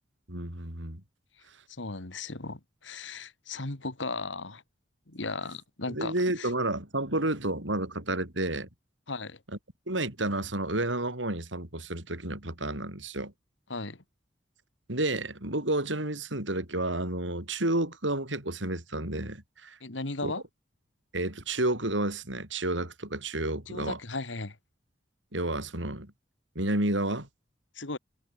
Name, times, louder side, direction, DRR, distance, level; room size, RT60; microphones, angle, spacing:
voice 1, 0.3-1.0 5.9-8.7 9.9-13.3 14.9-19.8 20.2-20.3 21.1-24.0 25.3-26.1 26.5-27.3, right 1 dB, 85° right, 6.9 m, -30 dB
voice 2, 1.8-4.6 5.1-6.5 9.1-9.4 13.7-14.0 19.8-20.4 23.7-24.6 27.8-28.0, left 3 dB, 85° left, 2.4 m, -36 dB
head